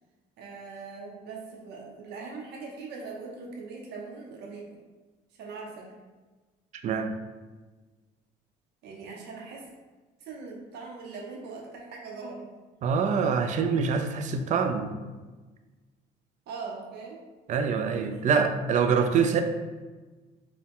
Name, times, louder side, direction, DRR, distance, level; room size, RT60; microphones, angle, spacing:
voice 1, 0.4-4.8 5.4-5.9 8.8-9.7 10.2-12.5 16.5-17.2 18.1-18.2, right 4 dB, 80° right, -1 dB, 0.8 m, -41 dB
voice 2, 6.8-7.1 12.8-14.9 17.5-19.4, right 6 dB, 45° right, 7 dB, 0.4 m, -25 dB
4.3 x 2.2 x 3.6 m, 1.3 s
cardioid pair, 110°, 17 cm